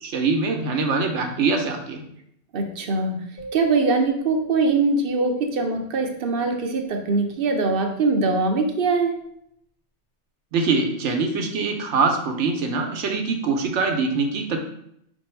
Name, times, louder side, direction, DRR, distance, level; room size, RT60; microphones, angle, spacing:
voice 1, 0.0-2.0 10.5-14.6, right 4 dB, 85° right, 4 dB, 1.0 m, -23 dB
voice 2, 2.5-9.2, right 3 dB, 55° right, 4 dB, 0.8 m, -22 dB
sound 1, 3.4-5.6, right 5 dB, 65° left, 1.1 m, -40 dB
4.5 x 2.7 x 4.3 m, 0.73 s
omnidirectional pair, 1.2 m